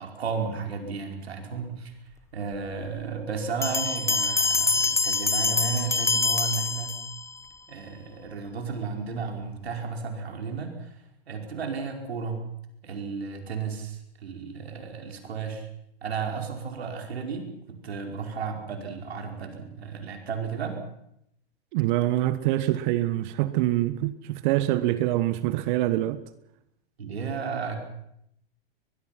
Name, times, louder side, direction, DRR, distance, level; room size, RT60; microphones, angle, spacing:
voice 1, 0.0-1.9 2.3-7.0 7.7-12.4 12.8-15.7 16.0-20.8 27.0-27.7, right 5 dB, 85° right, 5.2 m, -33 dB
Bell, 3.6-7.4, left 4 dB, 10° left, 1.1 m, -25 dB
voice 2, 21.7-26.2, right 15 dB, 50° right, 1.4 m, -25 dB
22.0 x 22.0 x 5.9 m
hypercardioid pair, 105°, 31 cm